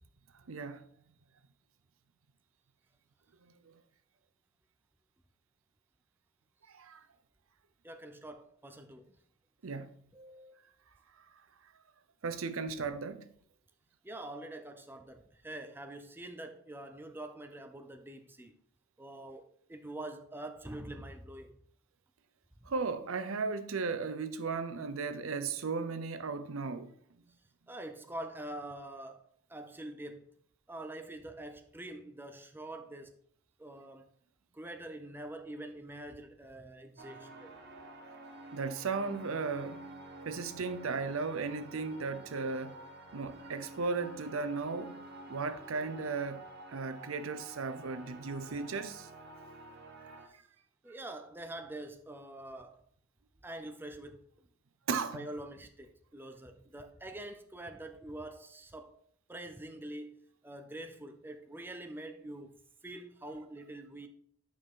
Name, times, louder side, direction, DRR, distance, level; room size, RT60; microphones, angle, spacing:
voice 1, 0.5-0.8 6.7-7.0 9.6-9.9 12.2-13.3 22.7-26.9 38.5-39.8 40.3-42.7 43.1-45.0 45.3-46.4 46.7-49.1 54.9-55.2, right 4 dB, 75° right, 0.6 m, -36 dB
voice 2, 7.8-9.2 10.1-10.6 14.0-18.5 19.0-21.6 27.7-29.2 29.5-30.3 30.7-33.2 33.6-34.1 34.5-37.5 50.3-50.4 50.8-52.8 53.4-54.2 55.1-59.0 59.3-60.1 60.4-64.1, right 1 dB, 10° right, 0.5 m, -45 dB
sound 1, 37.0-50.3, right 2 dB, 50° right, 1.1 m, -50 dB
8.9 x 4.9 x 3.7 m
head